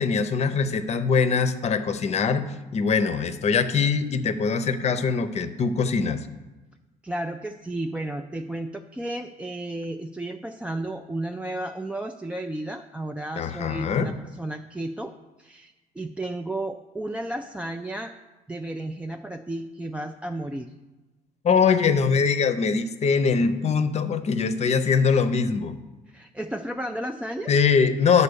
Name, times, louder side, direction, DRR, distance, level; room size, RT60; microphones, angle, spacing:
voice 1, 0.0-2.5 2.7-6.3 13.4-14.1 21.4-25.8 27.5-28.2, left 5 dB, 40° left, 11 dB, 0.7 m, -22 dB
voice 2, 7.0-15.1 15.4-18.1 18.5-20.7 26.1-27.5, right 1 dB, 5° right, 4 dB, 0.3 m, -33 dB
9.8 x 4.2 x 6.9 m, 1.2 s
cardioid pair, 110°, 17 cm